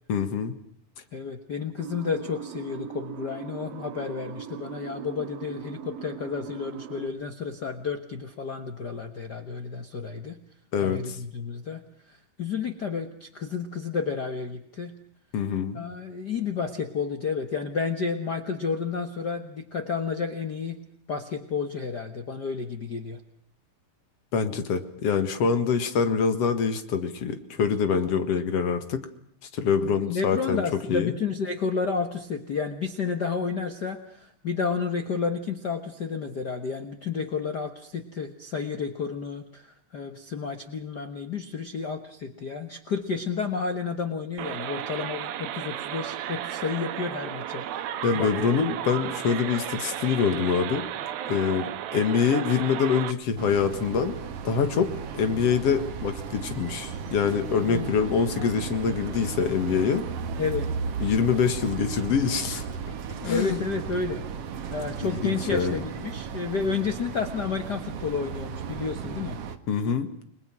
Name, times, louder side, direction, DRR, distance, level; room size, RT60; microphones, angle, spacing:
voice 1, 0.1-0.5 10.7-11.0 15.3-15.8 24.3-29.0 29.5-30.6 30.9-31.1 48.0-50.8 51.3-54.2 54.4-60.0 61.0-62.7 63.2-63.6 65.1-65.8 69.7-70.1, left 6 dB, 50° left, 9 dB, 2.4 m, -25 dB
voice 2, 1.1-10.4 10.8-11.8 12.1-14.9 15.7-20.8 21.1-23.2 29.8-47.6 48.1-48.6 57.7-57.9 60.4-60.7 63.2-64.2 64.7-69.4, left 5 dB, 80° left, 7 dB, 0.9 m, -31 dB
sound 1, 1.8-7.1, right 9 dB, 70° right, 3.4 m, -40 dB
sound 2, 44.4-53.1, right 11 dB, 85° right, 3.1 m, -34 dB
sound 3, 53.4-69.6, right 6 dB, 55° right, 1.9 m, -35 dB
30.0 x 21.0 x 6.1 m, 0.64 s
omnidirectional pair, 4.1 m